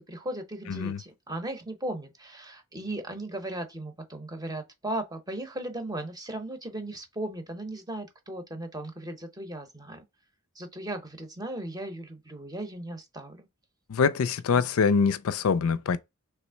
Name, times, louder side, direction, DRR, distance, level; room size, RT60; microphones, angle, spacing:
voice 1, 0.0-10.0 10.5-13.5, right 1 dB, 15° right, 0.7 m, -37 dB
voice 2, 0.7-1.0 13.9-16.0, left 5 dB, 65° left, 0.4 m, -24 dB
3.4 x 3.0 x 4.5 m
head